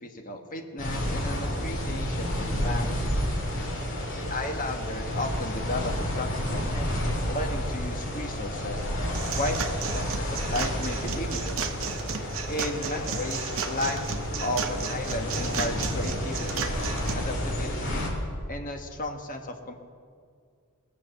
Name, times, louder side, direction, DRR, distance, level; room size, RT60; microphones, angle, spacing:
voice 1, 0.0-3.0 4.1-8.9 9.3-11.7 12.5-14.0 14.4-16.7 17.1-18.1 18.5-19.7, left 2 dB, 40° left, 3 dB, 1.4 m, -34 dB
sound 1, 0.8-18.1, equal, 60° left, 3.4 m, -30 dB
sound 2, 9.1-17.1, right 6 dB, 60° right, 0.9 m, -34 dB
20.0 x 7.3 x 6.7 m, 2.1 s
head